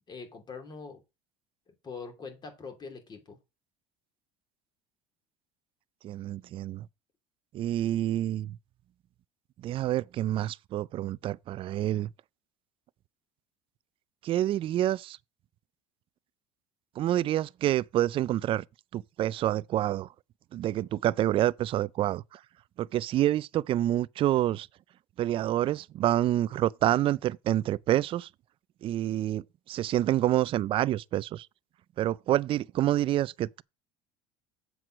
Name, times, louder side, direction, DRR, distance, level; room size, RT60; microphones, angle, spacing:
voice 1, 0.1-1.0 1.8-3.4, left 4 dB, 30° left, 2.7 m, -43 dB
voice 2, 6.0-6.9 7.5-8.6 9.6-12.1 14.2-15.2 17.0-18.6 18.9-20.1 20.5-22.4 22.8-24.7 25.2-28.3 28.8-31.5 32.0-33.6, right 13 dB, 40° right, 0.3 m, -27 dB
7.5 x 4.7 x 6.3 m
supercardioid pair, 110°, 14 cm